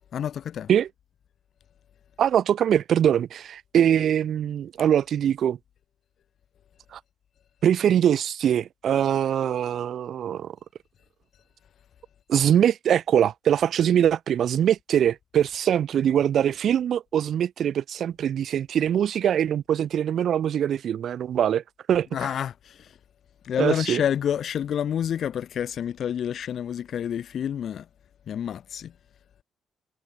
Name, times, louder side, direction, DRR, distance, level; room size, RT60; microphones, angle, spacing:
voice 1, 0.1-0.7 22.1-23.0 23.4-27.9 28.3-28.9, left 9 dB, 65° left, 2.8 m, -28 dB
voice 2, 2.2-5.6 6.9-7.0 7.6-10.5 12.3-21.6 21.9-22.1 23.6-24.0, right 9 dB, 65° right, 1.3 m, -22 dB
cardioid pair, 90°, 0 cm